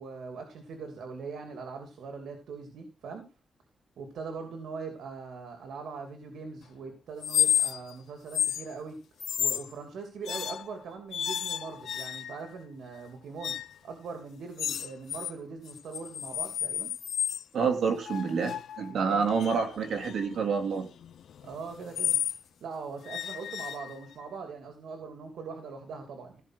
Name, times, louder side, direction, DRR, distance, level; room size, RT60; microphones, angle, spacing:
voice 1, 0.0-3.3 4.0-9.0 9.4-13.6 13.8-16.9 18.9-19.3 21.4-22.2 22.6-26.4, right 4 dB, 90° right, 5 dB, 2.7 m, -41 dB
sound 1, 7.2-7.9 8.3-8.7 9.2-9.7 10.3-10.8 11.1-12.5 13.4-13.8 14.6-15.3 15.7-17.4 18.1-22.4 23.1-24.2, left 9 dB, 70° left, 0.5 m, -32 dB
voice 2, 17.5-20.9, right 5 dB, 65° right, 5 dB, 3.2 m, -28 dB
16.0 x 5.6 x 6.4 m, 0.32 s
wide cardioid pair, 170°, 0 cm